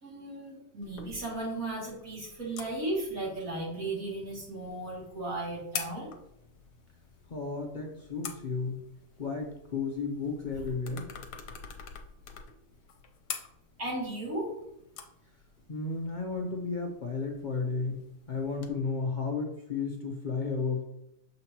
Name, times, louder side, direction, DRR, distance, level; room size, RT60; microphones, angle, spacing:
voice 1, 0.0-6.1 13.8-14.5, right 2 dB, 55° right, -6 dB, 2.9 m, -35 dB
sound 1, 0.8-18.7, left 7 dB, 85° left, 1.3 m, -47 dB
voice 2, 7.3-8.8 9.2-11.1 15.7-20.8, left 4 dB, 55° left, 2 dB, 0.5 m, -33 dB
6.7 x 5.3 x 2.9 m, 0.82 s
omnidirectional pair, 1.7 m